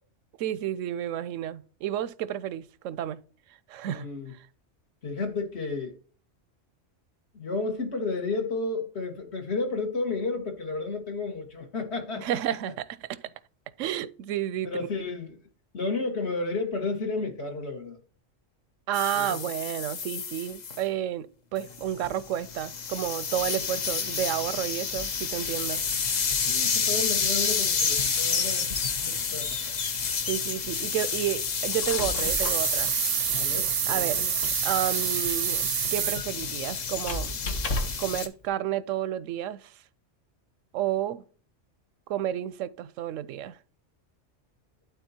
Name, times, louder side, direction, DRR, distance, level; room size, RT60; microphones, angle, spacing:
voice 1, 0.4-3.2 3.7-4.1 12.2-12.9 13.8-14.7 18.9-25.8 30.2-32.9 33.9-34.2 34.6-37.3 38.0-39.7 40.7-41.2 42.1-43.6, right 11 dB, 85° right, 0.9 m, -31 dB
voice 2, 3.9-4.3 5.0-6.0 7.3-12.6 14.6-15.4 15.7-18.0 19.1-19.4 26.5-28.7 29.0-29.7 33.3-34.3, left 3 dB, 60° left, 1.7 m, -32 dB
sound 1, 18.9-20.8 21.6-38.3, left 6 dB, 45° left, 0.7 m, -30 dB
Squeak, 31.6-38.2, left 2 dB, 80° left, 1.5 m, -36 dB
sound 2, 32.2-36.2, right 11 dB, 65° right, 0.7 m, -27 dB
11.5 x 4.0 x 2.8 m
omnidirectional pair, 1.3 m